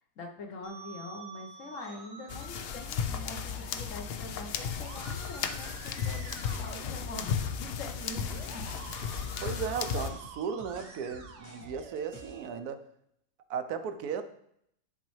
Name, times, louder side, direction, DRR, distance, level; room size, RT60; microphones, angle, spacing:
voice 1, 0.2-8.7, left 2 dB, 60° left, 2 dB, 1.2 m, -44 dB
Musical instrument, 0.6-12.6, right 5 dB, 55° right, 1.1 m, -49 dB
sound 1, 2.3-10.1, left 7 dB, 75° left, 0.5 m, -35 dB
sound 2, 7.0-12.5, equal, 30° left, 0.6 m, -50 dB
voice 2, 9.4-12.8 13.5-14.2, right 7 dB, 90° right, 8 dB, 1.1 m, -35 dB
10.5 x 4.1 x 3.2 m, 0.73 s
omnidirectional pair, 1.6 m